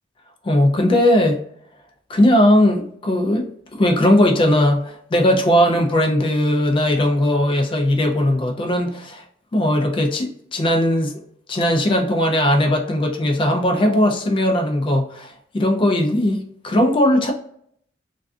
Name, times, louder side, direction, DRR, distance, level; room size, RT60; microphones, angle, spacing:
voice 1, 0.4-1.4 2.1-9.2 9.5-11.2 11.5-17.3, left 1 dB, 30° left, 2 dB, 0.3 m, -18 dB
2.3 x 2.3 x 2.4 m, 0.66 s
head